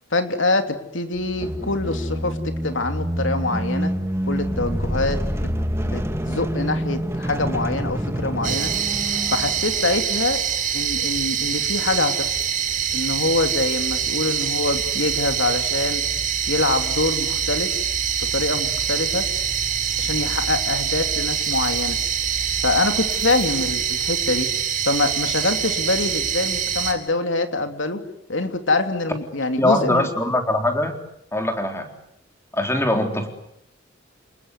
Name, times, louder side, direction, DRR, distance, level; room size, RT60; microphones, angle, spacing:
voice 1, 0.1-3.9 4.3-5.2 5.8-8.7 9.3-10.4 10.7-12.4 12.9-16.0 16.5-17.8 18.2-19.3 20.0-22.0 22.6-24.5 24.9-28.0 28.3-30.1, left 3 dB, 80° left, 7 dB, 3.1 m, -24 dB
sound 1, 1.2-9.9, equal, 15° right, 1.9 m, -27 dB
sound 2, 8.4-26.9, right 8 dB, 45° right, 5.7 m, -24 dB
voice 2, 29.6-31.0 31.3-31.9 32.5-33.3, left 1 dB, 15° left, 4 dB, 4.0 m, -22 dB
29.0 x 20.0 x 9.7 m, 0.76 s
head